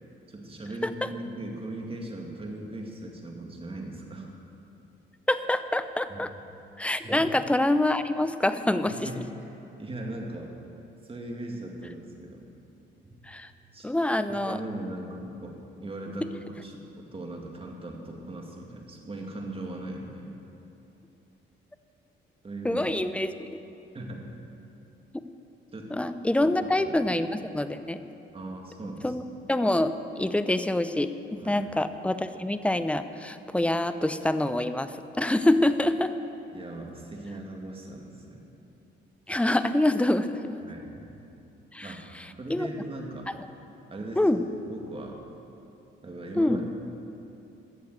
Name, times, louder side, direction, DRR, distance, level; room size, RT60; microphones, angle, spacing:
voice 1, 0.3-4.3 6.1-6.2 7.0-7.3 9.0-9.5 9.8-10.5 11.0-12.5 13.0-13.1 13.7-14.0 14.3-16.3 16.6-20.3 22.4-22.9 23.9-24.2 25.7-25.9 26.4-27.8 28.3-29.1 31.4-31.6 36.5-38.4 39.3-39.4 40.6-41.1 41.8-42.0 42.4-43.3 43.9-45.2 46.0-46.7, right 1 dB, 30° right, 1 dB, 2.2 m, -39 dB
voice 2, 5.3-6.3 6.8-9.2 13.3-13.5 13.8-14.6 22.6-23.5 25.9-28.0 29.0-29.2 29.5-36.1 39.3-40.6 41.7-41.9 42.5-42.7 44.2-44.4 46.3-46.6, left 1 dB, 5° left, 11 dB, 0.6 m, -26 dB
14.0 x 6.8 x 8.0 m, 2.9 s
cardioid pair, 90°, 20 cm